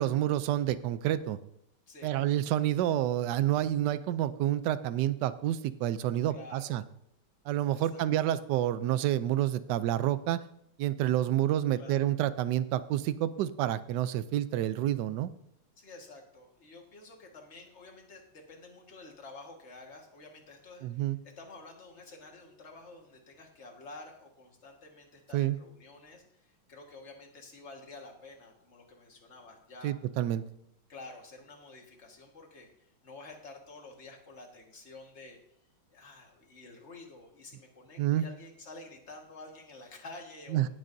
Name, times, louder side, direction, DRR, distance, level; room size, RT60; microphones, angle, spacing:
voice 1, 0.0-1.4 2.0-6.8 7.5-10.4 10.8-15.3 20.8-21.2 25.3-25.6 29.8-30.4 38.0-38.3 40.5-40.7, right 12 dB, 75° right, 14 dB, 1.0 m, -29 dB
voice 2, 1.9-2.2 6.3-6.8 7.7-8.0 11.8-12.1 15.8-30.0 30.9-35.4 35.9-40.7, left 2 dB, 35° left, 1 dB, 1.8 m, -50 dB
18.0 x 7.4 x 2.6 m, 0.72 s
omnidirectional pair, 2.3 m